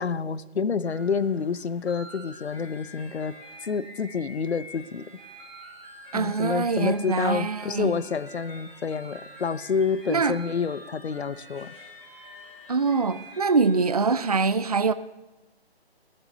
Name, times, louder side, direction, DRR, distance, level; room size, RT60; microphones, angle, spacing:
voice 1, 0.0-3.3 3.6-5.0 6.1-11.7, left 6 dB, 90° left, 0.8 m, -28 dB
sound 1, 0.8-14.3, equal, ahead, 0.6 m, -47 dB
voice 2, 6.1-7.9 10.1-10.4 12.7-14.9, right 4 dB, 40° right, 0.4 m, -24 dB
17.0 x 7.2 x 6.8 m
hypercardioid pair, 165°, 32 cm